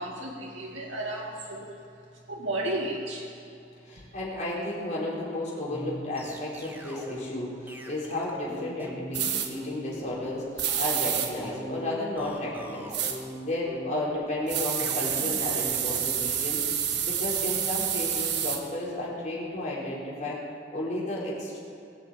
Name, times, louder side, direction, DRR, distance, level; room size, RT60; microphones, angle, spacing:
voice 1, 0.0-1.7 2.3-3.3, right 1 dB, 90° right, -3 dB, 2.1 m, -33 dB
voice 2, 3.8-12.9 13.4-16.6 17.0-20.4 20.7-21.6, left 1 dB, 40° left, -6 dB, 4.5 m, -33 dB
sound 1, 5.7-16.1, equal, 10° right, 1.7 m, -41 dB
sound 2, 9.1-9.5 10.6-11.3 12.9-13.2 14.5-18.6, right 9 dB, 65° right, 1.4 m, -28 dB
19.0 x 7.9 x 8.5 m, 2.6 s
head